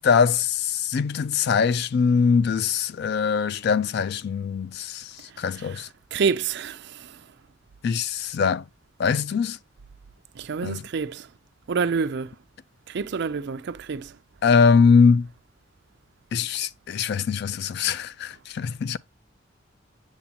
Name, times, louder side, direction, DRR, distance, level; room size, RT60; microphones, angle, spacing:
voice 1, 0.0-5.9 7.8-8.6 9.0-9.6 10.6-10.8 14.4-15.3 16.3-19.0, left 5 dB, 55° left, 0.3 m, -22 dB
voice 2, 6.1-7.1 10.4-11.3 11.7-12.3 12.9-14.1, right 5 dB, 60° right, 0.4 m, -27 dB
7.3 x 7.0 x 2.8 m
head